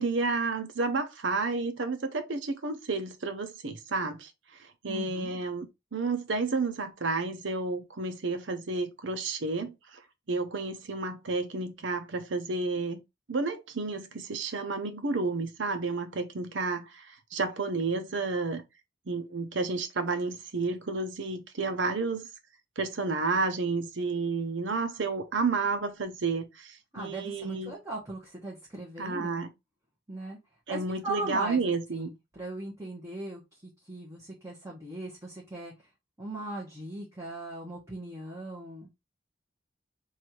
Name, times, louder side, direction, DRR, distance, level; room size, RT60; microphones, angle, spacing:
voice 1, 0.0-4.3 4.8-9.7 10.3-13.0 13.3-17.0 17.3-18.6 19.1-22.3 22.8-27.7 29.0-29.5 30.7-32.1, right 3 dB, 85° right, 0.8 m, -31 dB
voice 2, 4.9-5.4 26.9-29.4 30.1-30.4 30.7-35.7 36.2-38.9, right 2 dB, 15° right, 1.2 m, -39 dB
3.3 x 2.7 x 4.4 m
head